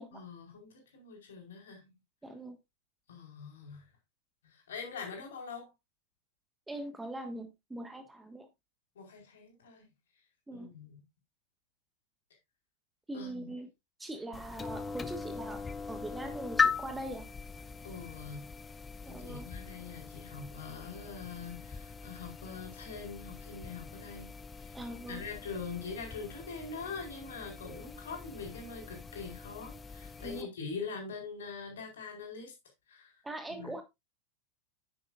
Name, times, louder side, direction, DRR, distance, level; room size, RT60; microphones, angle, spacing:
voice 1, 0.1-1.9 3.1-3.9 4.4-5.7 8.9-9.9 10.5-11.0 13.1-13.5 17.8-18.5 19.0-24.3 24.6-24.8 25.0-32.5 32.9-33.2 33.5-33.7, left 5 dB, 60° left, 4.6 m, -43 dB
voice 2, 2.2-2.6 6.7-8.5 10.5-10.7 13.1-13.7 14.0-17.3 19.0-19.5 24.7-25.2 27.6-27.9 30.2-30.5 33.2-33.8, right 1 dB, 10° right, 1.6 m, -42 dB
sound 1, 14.3-30.4, left 5 dB, 15° left, 0.7 m, -39 dB
9.8 x 9.3 x 2.5 m
figure-of-eight pair, 90°, 0 cm